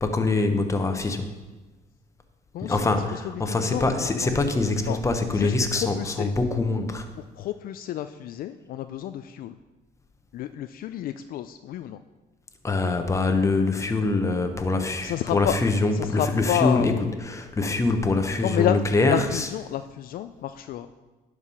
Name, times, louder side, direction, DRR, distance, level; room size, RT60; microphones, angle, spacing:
voice 1, 0.0-1.3 2.6-7.1 12.6-16.9 17.2-19.5, left 3 dB, 15° left, 6 dB, 0.9 m, -24 dB
voice 2, 2.5-4.3 4.9-5.0 5.3-6.3 7.4-9.6 10.3-12.0 15.0-15.6 15.9-17.1 18.4-18.8 19.1-20.9, left 11 dB, 60° left, 10 dB, 0.4 m, -30 dB
11.0 x 4.8 x 5.6 m, 1.2 s
cardioid pair, 110°, 17 cm